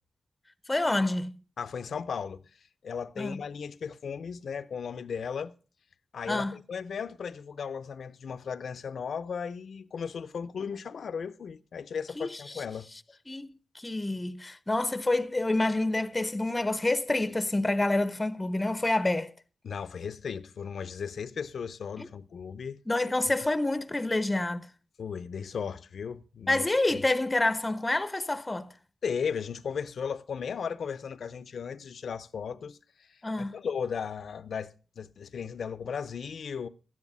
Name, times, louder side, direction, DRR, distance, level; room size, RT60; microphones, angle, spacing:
voice 1, 0.7-1.3 3.2-3.4 6.3-6.6 12.2-12.4 13.3-19.3 22.0-22.1 22.9-24.7 26.5-28.7 33.2-33.6, left 2 dB, 20° left, 0.6 m, -28 dB
voice 2, 1.6-2.4 2.8-5.5 6.1-12.9 19.6-22.8 25.0-26.7 26.9-27.0 29.0-33.1 33.4-36.7, left 6 dB, 85° left, 0.6 m, -36 dB
12.5 x 9.7 x 5.4 m
wide cardioid pair, 105°, 0 cm